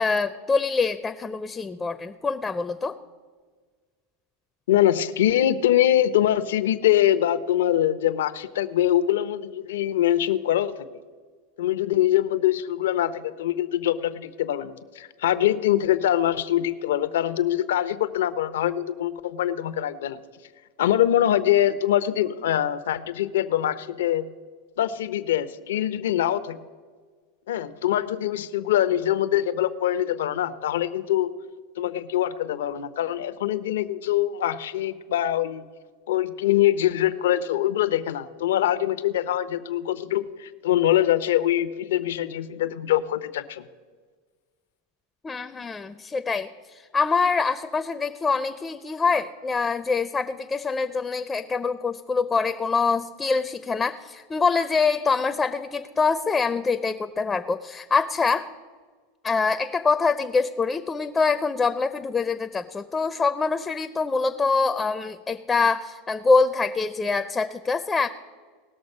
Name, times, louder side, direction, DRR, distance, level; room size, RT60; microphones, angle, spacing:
voice 1, 0.0-3.0 45.2-58.5 59.2-68.1, left 4 dB, 15° left, 10 dB, 0.4 m, -24 dB
voice 2, 4.7-10.8 11.6-20.2 20.8-24.3 24.8-26.6 27.5-31.3 31.8-35.6 36.1-43.6, left 12 dB, 85° left, 12 dB, 0.6 m, -23 dB
18.5 x 6.5 x 5.4 m, 1.5 s
supercardioid pair, 130°, 0 cm